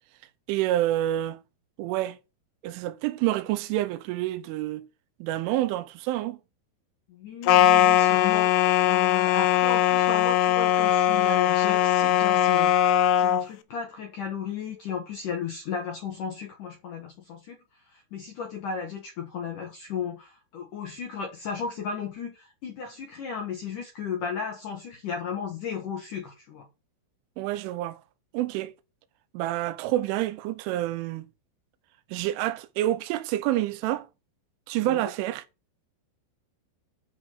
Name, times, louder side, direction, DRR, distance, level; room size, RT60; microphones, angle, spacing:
voice 1, 0.5-1.4 1.8-2.2 2.6-4.9 5.2-6.4 27.4-28.0 28.3-28.7 29.3-31.3 32.1-34.1 34.7-35.4, right 14 dB, 80° right, 3.0 m, -28 dB
voice 2, 7.1-8.5 8.8-12.7 13.1-26.7 34.8-35.1, left 6 dB, 70° left, 2.0 m, -35 dB
sound 1, 7.5-13.4, left 11 dB, 90° left, 3.3 m, -20 dB
8.7 x 5.2 x 7.0 m
omnidirectional pair, 5.7 m